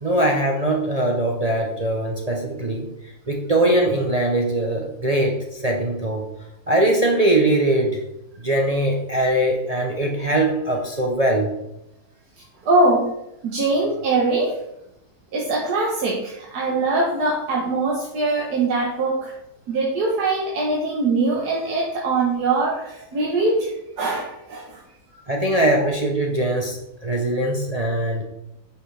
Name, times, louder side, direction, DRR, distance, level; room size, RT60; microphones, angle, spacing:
voice 1, 0.0-2.9 3.3-6.2 6.7-8.0 8.4-11.5 25.3-28.2, right 1 dB, 30° right, 1 dB, 0.7 m, -21 dB
voice 2, 12.6-13.0 13.4-14.5 15.3-19.3 19.7-24.8, right 3 dB, 90° right, -3 dB, 1.7 m, -22 dB
9.3 x 5.8 x 3.3 m, 0.85 s
omnidirectional pair, 1.7 m